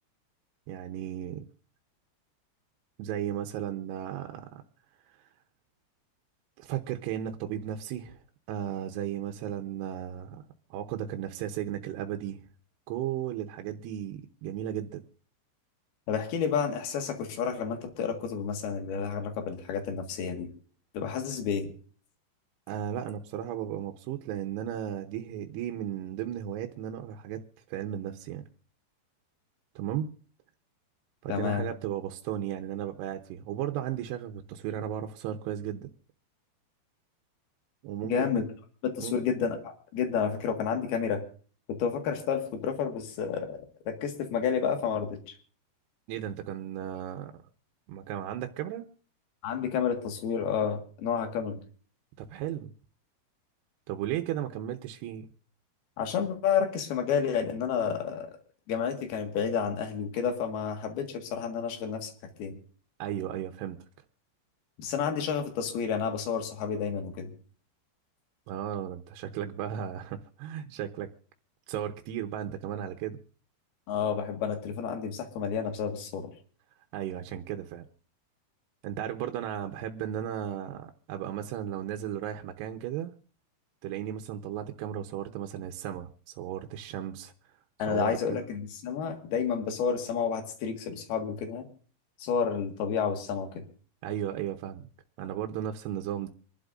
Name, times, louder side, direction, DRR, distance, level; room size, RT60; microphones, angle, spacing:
voice 1, 0.7-1.5 3.0-4.6 6.6-8.2 8.5-10.4 10.7-12.4 12.9-15.0 22.7-27.4 27.7-28.4 29.8-30.1 31.2-35.9 37.8-38.3 39.0-39.2 46.1-47.3 47.9-48.9 52.2-52.7 53.9-55.3 63.0-63.8 68.5-71.1 71.7-73.2 76.9-77.9 78.8-83.1 83.8-87.3 87.9-88.4 94.0-94.9 95.2-96.3, right 10 dB, 80° right, 2.8 m, -35 dB
voice 2, 16.1-20.5 20.9-21.7 31.3-31.7 38.0-38.4 38.8-41.2 41.7-45.4 49.4-51.6 56.0-58.3 58.7-62.1 62.4-62.6 64.8-67.3 73.9-76.3 87.8-91.7 92.2-93.6, left 7 dB, 65° left, 3.5 m, -30 dB
27.0 x 11.5 x 2.6 m
omnidirectional pair, 5.0 m